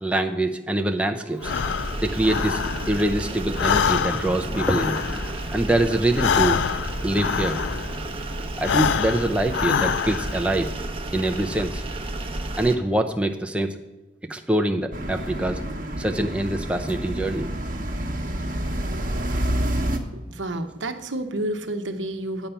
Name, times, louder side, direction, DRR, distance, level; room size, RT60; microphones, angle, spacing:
voice 1, 0.0-2.6 2.9-5.2 5.5-6.6 7.0-7.6 8.6-10.7 11.1-11.8 12.6-13.8 14.3-15.6 16.0-17.5, right 1 dB, 5° right, 4 dB, 0.5 m, -24 dB
Breathing, 1.4-3.2 3.5-8.1 8.5-10.5, left 7 dB, 70° left, 0.3 m, -26 dB
sound 1, 1.4-12.8, right 2 dB, 30° right, 0.8 m, -32 dB
sound 2, 14.9-20.0, right 1 dB, 45° right, 1.1 m, -28 dB
voice 2, 20.1-22.5, right 1 dB, 80° right, 7 dB, 0.9 m, -30 dB
8.9 x 5.7 x 6.8 m, 1.1 s
head